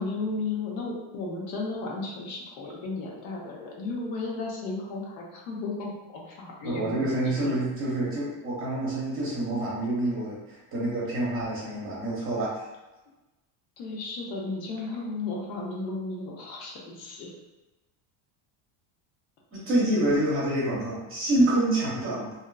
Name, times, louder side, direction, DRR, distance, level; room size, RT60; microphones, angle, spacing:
voice 1, 0.0-7.1 7.4-7.6 13.8-17.3, left 3 dB, 90° left, -2 dB, 0.9 m, -34 dB
voice 2, 6.6-12.7 19.5-22.3, right 1 dB, 25° right, -6 dB, 0.6 m, -27 dB
2.7 x 2.4 x 2.2 m, 1.1 s
cardioid pair, 155°, 50 cm